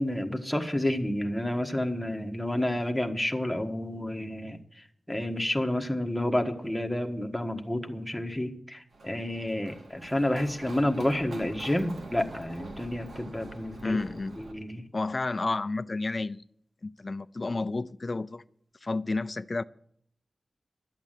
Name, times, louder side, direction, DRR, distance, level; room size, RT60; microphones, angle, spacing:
voice 1, 0.0-4.6 5.1-14.0 14.4-14.8, left 1 dB, 5° left, 1.4 m, -30 dB
Run, 8.9-14.5, right 2 dB, 90° right, 2.2 m, -45 dB
voice 2, 13.8-14.4 14.9-16.4 16.8-18.4 18.8-19.6, left 3 dB, 40° left, 0.5 m, -31 dB
12.0 x 8.3 x 9.1 m
wide cardioid pair, 95°, 0 cm